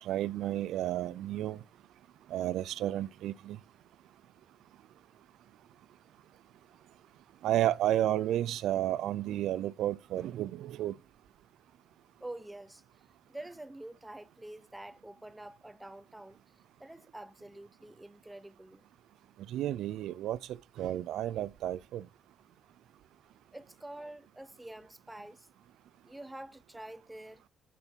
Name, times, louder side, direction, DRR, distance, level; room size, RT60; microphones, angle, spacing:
voice 1, 0.0-1.6 2.3-3.6 7.4-10.9 19.5-20.4 20.8-22.1, right 12 dB, 80° right, 0.3 m, -32 dB
voice 2, 12.2-12.8 13.3-16.4 16.8-18.8 23.5-25.5 26.0-27.4, right 1 dB, 10° right, 0.6 m, -47 dB
7.4 x 6.8 x 4.5 m
cardioid pair, 90°, 0 cm